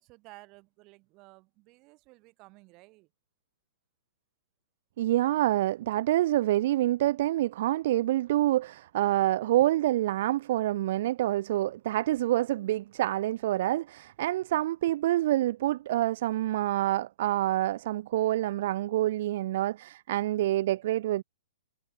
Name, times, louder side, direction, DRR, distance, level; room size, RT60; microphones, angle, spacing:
voice 1, 0.0-3.1, right 24 dB, 25° right, 8.0 m, -54 dB
voice 2, 5.0-21.2, right 14 dB, 40° right, 0.5 m, -27 dB
hypercardioid pair, 165°, 0 cm